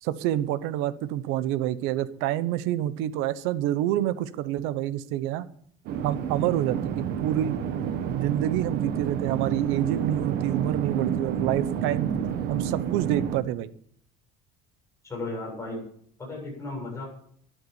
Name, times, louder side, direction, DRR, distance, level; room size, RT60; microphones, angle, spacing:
voice 1, 0.0-5.5 6.0-7.6 8.1-12.1 12.5-13.7, right 13 dB, 75° right, 14 dB, 1.0 m, -27 dB
sound 1, 5.9-13.4, right 8 dB, 50° right, 1.5 m, -29 dB
voice 2, 15.0-15.9 16.2-17.0, left 2 dB, 15° left, -2 dB, 7.6 m, -35 dB
12.5 x 11.5 x 7.1 m, 0.64 s
cardioid pair, 170°, 21 cm